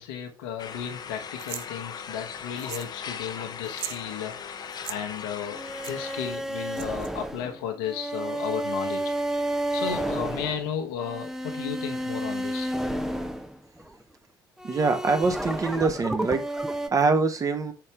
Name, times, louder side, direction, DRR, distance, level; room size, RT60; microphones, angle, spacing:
voice 1, 0.0-9.1 9.7-12.7, left 8 dB, 65° left, 1.2 m, -34 dB
sound 1, 0.6-6.4, left 7 dB, 40° left, 0.8 m, -39 dB
sound 2, 1.4-1.7 2.6-3.0 3.2-3.3 3.6-4.0 4.7-5.0 5.8-5.9 6.7-7.1, right 16 dB, 60° right, 0.4 m, -38 dB
sound 3, 5.5-14.0 14.6-16.9, right 1 dB, 5° right, 0.8 m, -31 dB
voice 2, 14.6-16.4 16.9-17.7, right 4 dB, 30° right, 1.3 m, -24 dB
5.8 x 5.5 x 3.3 m
figure-of-eight pair, 55°, 11 cm